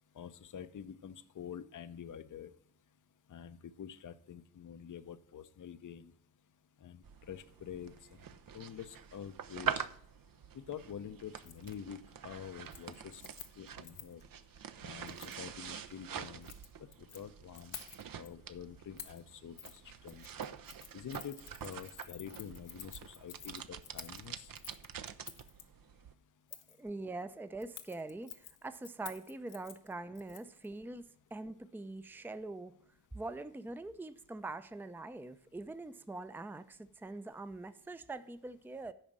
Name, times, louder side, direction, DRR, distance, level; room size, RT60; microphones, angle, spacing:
voice 1, 0.1-2.5 3.3-6.1 6.8-7.9 8.5-9.9 10.5-12.0 12.2-13.2 13.6-14.2 14.8-16.5 17.1-17.7 18.2-20.2 20.9-21.4 21.6-24.5, left 8 dB, 45° left, 0.7 m, -47 dB
sound 1, 7.0-26.1, right 8 dB, 50° right, 0.7 m, -45 dB
Keys jangling, 11.4-11.7 12.1-12.4 12.7-14.2 15.1-15.4 16.3-17.2 17.5-18.3 19.0-19.2 19.6-19.8 20.1-25.6 26.5-26.8 27.6-30.7 31.0-31.1, left 9 dB, 80° left, 1.0 m, -51 dB
voice 2, 26.8-31.1 31.3-32.7 33.1-38.9, right 2 dB, 5° right, 0.6 m, -43 dB
9.0 x 5.1 x 7.4 m
supercardioid pair, 45°, 43 cm